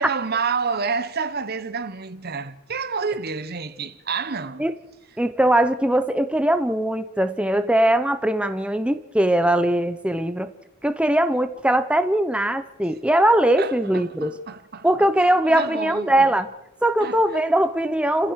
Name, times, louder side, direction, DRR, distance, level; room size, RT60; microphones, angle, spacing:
voice 1, 0.0-4.7 13.6-14.9 15.5-16.3 17.0-17.2, right 5 dB, 45° right, 1.1 m, -29 dB
voice 2, 5.2-10.5 10.8-14.3 14.8-16.5 16.8-18.3, right 1 dB, 5° right, 0.9 m, -20 dB
29.5 x 15.5 x 6.5 m
head